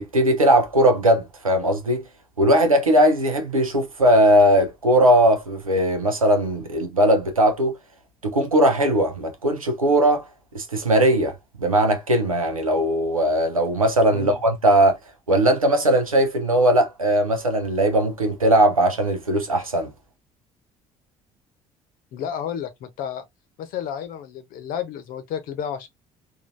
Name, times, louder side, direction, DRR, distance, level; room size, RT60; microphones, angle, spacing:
voice 1, 0.0-2.0 2.4-7.7 8.2-10.2 10.5-11.3 11.6-15.0 15.3-19.9, right 1 dB, 90° right, 0.6 m, -19 dB
voice 2, 14.1-14.4 22.1-23.2 23.6-25.9, left 9 dB, 55° left, 0.9 m, -31 dB
3.6 x 2.6 x 2.6 m
figure-of-eight pair, 50°, 17 cm